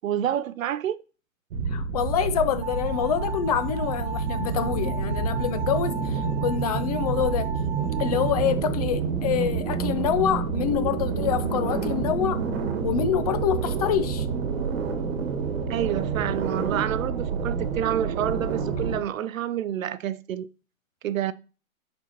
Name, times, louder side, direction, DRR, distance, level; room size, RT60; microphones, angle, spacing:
voice 1, 0.0-1.0 15.7-20.5 21.0-21.3, right 10 dB, 70° right, 0.6 m, -28 dB
sound 1, 1.5-19.0, right 5 dB, 45° right, 1.5 m, -28 dB
voice 2, 1.7-7.5 8.0-12.4 12.8-14.3, left 9 dB, 30° left, 0.5 m, -26 dB
sound 2, 2.6-8.4, right 4 dB, 25° right, 0.5 m, -37 dB
11.0 x 4.4 x 2.8 m
hypercardioid pair, 130°, 41 cm